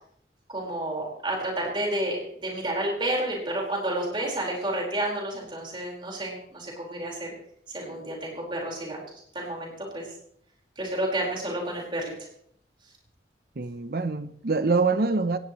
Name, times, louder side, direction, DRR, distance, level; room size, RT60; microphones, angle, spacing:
voice 1, 0.5-2.2 2.4-7.3 7.7-9.0 9.3-10.0 10.8-12.1, right 1 dB, 30° right, 4.7 m, -30 dB
voice 2, 13.6-15.4, right 4 dB, 55° right, 0.7 m, -25 dB
18.5 x 15.5 x 3.1 m
head